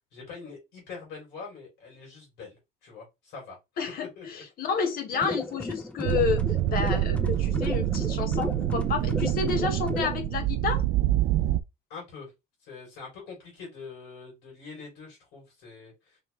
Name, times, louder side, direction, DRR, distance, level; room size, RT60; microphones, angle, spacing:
voice 1, 0.1-3.6 3.9-4.4 11.9-12.3 12.6-16.2, left 4 dB, 90° left, 3.2 m, -44 dB
voice 2, 3.8-10.8, left 6 dB, 60° left, 1.3 m, -30 dB
sound 1, 5.1-10.2, left 1 dB, 5° left, 0.6 m, -34 dB
sound 2, 6.0-11.6, right 13 dB, 80° right, 0.4 m, -26 dB
4.3 x 3.2 x 3.2 m
cardioid pair, 110°, 17 cm